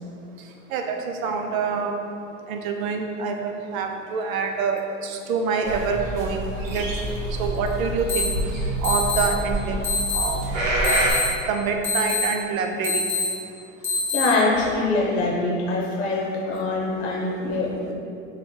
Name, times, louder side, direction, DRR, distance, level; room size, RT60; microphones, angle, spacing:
voice 1, 1.2-1.9 2.5-6.4 6.7-6.8 7.4-8.3 8.8-9.8 10.1-10.4 10.7-11.0 11.5-13.0, right 5 dB, 85° right, 3 dB, 0.5 m, -26 dB
sound 1, 5.6-11.1, right 1 dB, 25° right, 0.3 m, -27 dB
sound 2, 8.1-8.2 8.8-9.2 9.8-10.2 10.8-11.2 11.8-12.2 12.8-13.2 13.8-14.2, left 5 dB, 5° left, 0.7 m, -24 dB
voice 2, 14.1-17.9, left 2 dB, 55° left, -2 dB, 0.8 m, -24 dB
3.6 x 3.1 x 2.2 m, 2.5 s
supercardioid pair, 140°, 40 cm